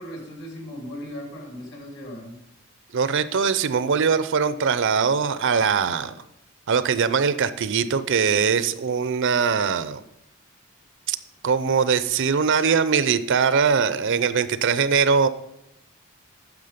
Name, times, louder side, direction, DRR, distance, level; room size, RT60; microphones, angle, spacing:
voice 1, 0.0-2.4, equal, 55° left, 2 dB, 2.6 m, -37 dB
voice 2, 2.9-6.1 6.7-10.0 11.1-11.2 11.4-15.3, right 6 dB, 60° right, 14 dB, 0.5 m, -21 dB
9.6 x 7.1 x 5.1 m, 0.83 s
head